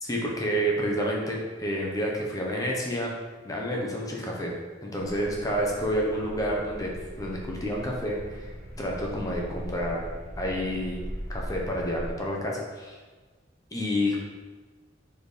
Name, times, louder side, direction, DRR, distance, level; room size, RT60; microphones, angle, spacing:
voice 1, 0.0-3.1 3.4-4.5 4.8-6.9 7.2-8.5 8.8-10.1 10.4-11.0 11.3-13.0 13.7-14.2, equal, 20° left, -2 dB, 1.1 m, -29 dB
sound 1, 5.0-12.1, equal, 40° right, 1.3 m, -39 dB
4.5 x 4.4 x 5.1 m, 1.3 s
head